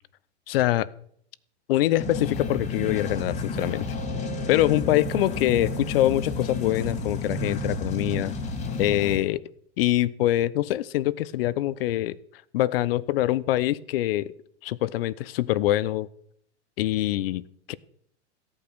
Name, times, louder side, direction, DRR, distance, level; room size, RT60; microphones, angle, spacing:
voice 1, 0.5-0.9 1.7-3.9 4.5-8.3 8.8-9.4 9.8-12.2 12.5-14.3 14.6-16.1 16.8-17.7, left 15 dB, 55° left, 0.8 m, -24 dB
sound 1, 2.0-9.2, left 3 dB, 20° left, 1.7 m, -31 dB
16.0 x 8.8 x 6.2 m
hypercardioid pair, 135°, 35 cm